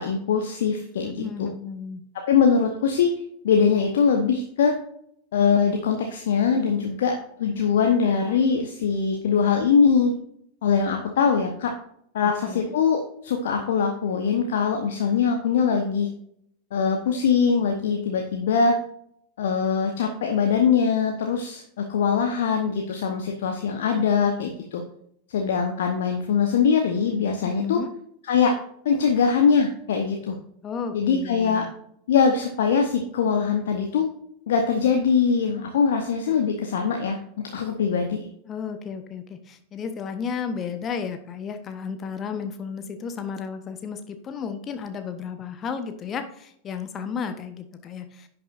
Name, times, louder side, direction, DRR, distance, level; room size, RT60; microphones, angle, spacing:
voice 1, 0.0-1.5 2.1-3.1 3.4-4.8 5.3-10.1 10.6-11.7 12.1-16.1 16.7-18.8 19.4-24.8 25.3-27.8 28.3-28.5 28.8-30.4 30.9-31.7 32.1-34.0 34.5-37.2 37.5-38.3, left 6 dB, 60° left, 3 dB, 1.0 m, -22 dB
voice 2, 1.0-2.0 12.5-12.7 27.4-27.9 30.6-31.7 38.5-48.3, left 6 dB, 25° left, 8 dB, 0.8 m, -33 dB
10.0 x 7.1 x 2.5 m, 0.71 s
figure-of-eight pair, 90°, 0 cm